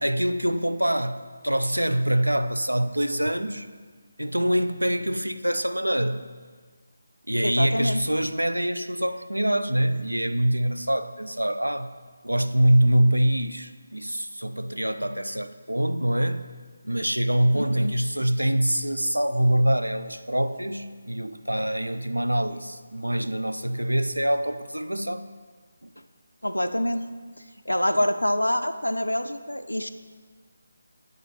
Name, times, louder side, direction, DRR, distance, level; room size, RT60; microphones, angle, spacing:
voice 1, 0.0-3.7 4.2-6.3 7.3-11.9 12.2-16.5 16.8-25.3 25.8-25.9, right 1 dB, 90° right, 11 dB, 0.3 m, -25 dB
voice 2, 7.4-8.0 17.5-17.9 26.4-27.0 27.7-29.9, left 1 dB, 90° left, 10 dB, 0.3 m, -26 dB
7.6 x 4.9 x 3.1 m, 1.5 s
figure-of-eight pair, 155°, 0 cm